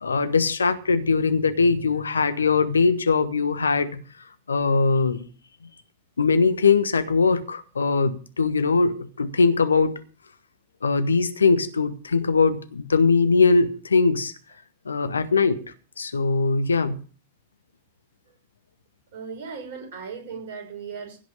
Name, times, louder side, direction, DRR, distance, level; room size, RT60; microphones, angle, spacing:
voice 1, 0.0-4.0 4.5-5.2 6.2-10.0 10.8-14.3 14.8-15.6 16.0-17.0, left 4 dB, 75° left, 1.1 m, -21 dB
voice 2, 19.1-21.2, right 5 dB, 55° right, 6.2 m, -37 dB
16.5 x 6.1 x 7.3 m
figure-of-eight pair, 90°, 0 cm